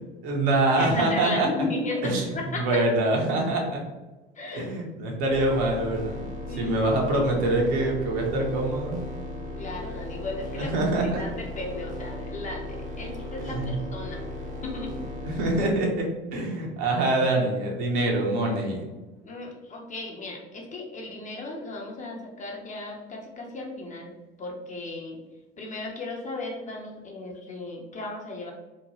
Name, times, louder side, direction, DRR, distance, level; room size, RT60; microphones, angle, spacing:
voice 1, 0.2-1.5 2.0-3.8 4.5-6.3 6.6-9.0 10.6-11.2 13.4-13.8 15.4-18.8, right 2 dB, 55° right, -1 dB, 0.8 m, -25 dB
voice 2, 0.8-2.8 4.3-4.7 6.5-6.8 9.6-10.9 11.2-14.2 14.6-14.9 19.2-24.1 24.4-25.2 25.6-28.5, left 2 dB, 25° left, -1 dB, 0.7 m, -35 dB
sound 1, 5.3-15.7, left 1 dB, 25° right, 0.6 m, -36 dB
2.9 x 2.2 x 2.8 m, 1.1 s
figure-of-eight pair, 65°, 30 cm